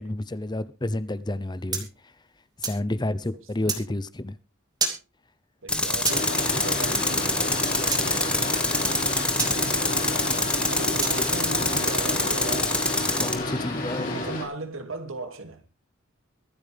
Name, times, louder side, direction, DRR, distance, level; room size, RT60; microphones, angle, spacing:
voice 1, 0.0-1.9 2.6-4.4 13.2-14.2, left 1 dB, 20° left, 0.7 m, -30 dB
sound 1, 1.7-2.8 3.7-3.8 4.8-5.0 6.1-6.2 7.9-8.0 9.4-9.5 11.0-11.2, right 4 dB, 20° right, 2.5 m, -28 dB
voice 2, 5.6-10.3 10.7-12.8 14.1-15.7, right 2 dB, 75° right, 2.4 m, -38 dB
Tools, 5.7-13.4, left 2 dB, 5° left, 1.5 m, -26 dB
Boat Water vehicle, 6.1-14.4, left 2 dB, 45° left, 5.2 m, -30 dB
24.0 x 8.8 x 3.4 m
head